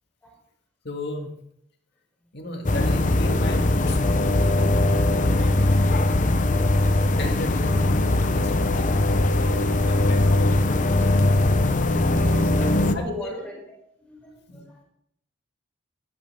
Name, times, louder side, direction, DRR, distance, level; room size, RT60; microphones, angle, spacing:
voice 1, 0.8-1.4 2.3-4.5 7.1-7.9 8.2-8.9 9.2-10.2 10.5-10.9 12.8-13.4 14.5-14.6, left 1 dB, 55° left, 3 dB, 2.2 m, -34 dB
sound 1, 2.6-12.9, left 2 dB, 40° left, 0.8 m, -20 dB
voice 2, 5.2-6.4 11.5-13.6 14.0-14.8, equal, 10° left, -2 dB, 4.3 m, -41 dB
14.0 x 12.0 x 3.7 m, 0.73 s
head